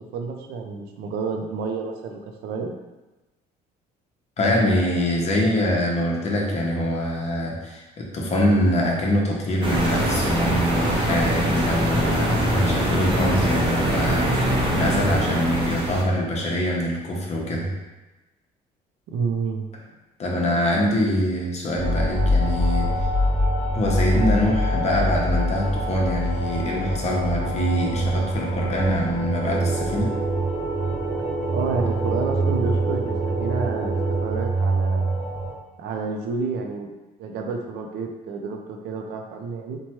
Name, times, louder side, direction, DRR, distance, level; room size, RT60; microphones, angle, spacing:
voice 1, 0.0-2.7 19.1-19.6 31.5-35.2 35.8-36.9 37.2-39.8, right 5 dB, 80° right, 3 dB, 0.4 m, -29 dB
voice 2, 4.4-17.7 20.2-22.9 23.7-30.2, left 1 dB, 40° left, -1 dB, 0.7 m, -24 dB
sound 1, 9.6-16.0, right 1 dB, 30° right, 0.6 m, -23 dB
sound 2, 21.8-35.5, right 1 dB, 20° left, 1.0 m, -25 dB
sound 3, 29.4-34.4, right 3 dB, 55° right, 1.0 m, -31 dB
3.1 x 2.2 x 2.8 m, 1.1 s
cardioid pair, 110°, 17 cm